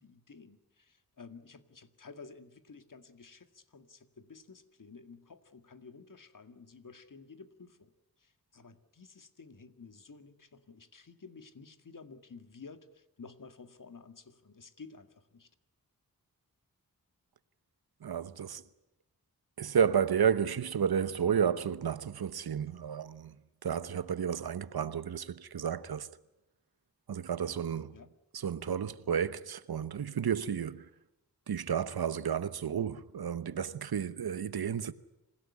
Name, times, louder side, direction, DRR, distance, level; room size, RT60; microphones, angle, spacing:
voice 1, 0.0-7.9 8.2-15.5 27.9-28.1, left 4 dB, 60° left, 2.1 m, -52 dB
voice 2, 18.0-18.6 19.6-23.3 23.6-26.1 27.1-28.0 28.3-30.9 31.5-34.9, right 7 dB, 85° right, 1.0 m, -32 dB
26.5 x 16.5 x 9.8 m
cardioid pair, 55°, 37 cm